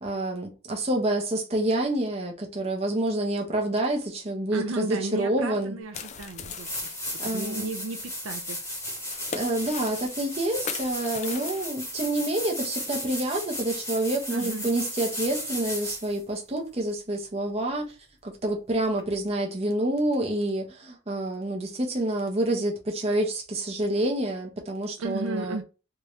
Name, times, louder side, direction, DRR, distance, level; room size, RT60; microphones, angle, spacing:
voice 1, 0.0-5.8 7.2-7.7 9.3-17.9 18.2-25.6, right 1 dB, 30° right, 1.0 m, -28 dB
voice 2, 4.5-6.7 7.1-8.6 14.3-14.7 25.0-25.6, right 3 dB, 90° right, 0.6 m, -34 dB
sound 1, 5.9-11.7, left 6 dB, 35° left, 0.4 m, -40 dB
sound 2, 5.9-6.0 6.4-16.2 19.0-19.1, left 1 dB, 15° left, 1.2 m, -35 dB
3.5 x 2.8 x 3.1 m
head